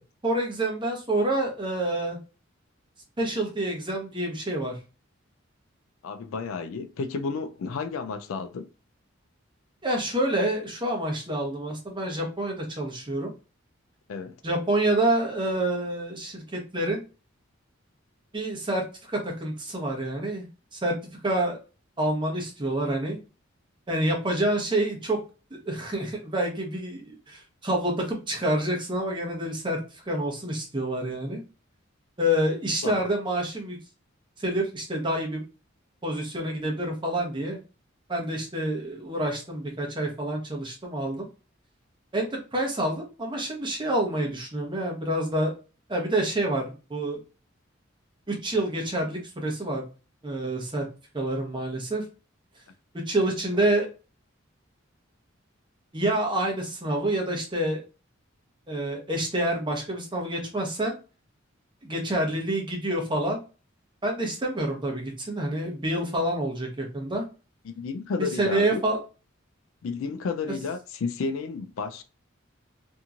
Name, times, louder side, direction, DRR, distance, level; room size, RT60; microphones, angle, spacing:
voice 1, 0.2-2.2 3.2-4.8 9.8-13.3 14.4-17.0 18.3-20.5 20.7-20.9 21.2-21.6 22.0-23.2 23.9-25.2 25.6-31.4 32.2-33.8 34.4-35.4 36.0-37.6 38.1-41.3 42.1-45.5 45.9-47.2 48.3-49.8 50.2-50.8 51.1-52.0 53.1-53.9 55.9-57.8 58.7-61.0 61.8-63.4 64.0-67.2 68.2-69.0, right 1 dB, 25° right, 0.8 m, -27 dB
voice 2, 6.0-8.7 14.1-14.4 32.8-33.1 67.7-68.8 69.8-72.0, left 4 dB, 85° left, 0.4 m, -32 dB
2.9 x 2.6 x 2.3 m
head